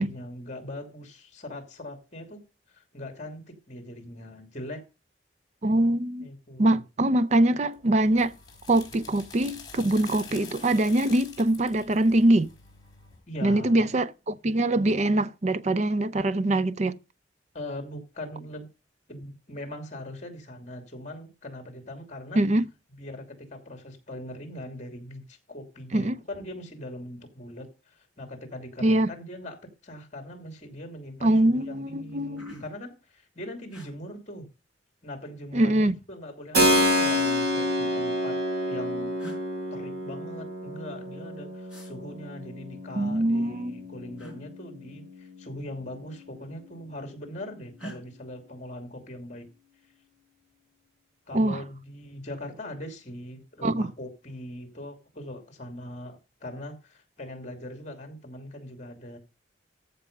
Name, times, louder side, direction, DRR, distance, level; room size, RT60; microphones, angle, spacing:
voice 1, 0.0-2.4 2.7-4.8 6.2-6.8 13.3-13.9 17.5-18.7 19.1-22.4 22.9-34.5 35.0-38.4 38.7-39.1 39.7-49.5 51.3-59.2, left 1 dB, 40° left, 2.6 m, -41 dB
voice 2, 5.6-6.3 6.6-8.3 8.7-12.5 13.4-17.0 22.4-22.6 25.9-26.2 28.8-29.1 31.2-32.5 35.5-36.0 43.0-43.8 51.3-51.6 53.6-53.9, right 1 dB, 35° right, 0.5 m, -23 dB
sound 1, 7.7-13.2, left 5 dB, 20° left, 3.8 m, -46 dB
sound 2, 30.0-30.2 30.6-31.1 31.6-31.7 32.0-32.9 33.7-33.9 35.1-35.8 36.9-37.8 38.7-38.8 39.2-39.4 41.7-41.9 44.2-44.4 45.7-46.0 46.3-46.9 47.8-48.0, right 1 dB, 5° right, 4.8 m, -46 dB
Keyboard (musical), 36.5-45.1, left 1 dB, 55° right, 2.2 m, -28 dB
14.0 x 5.5 x 5.3 m
head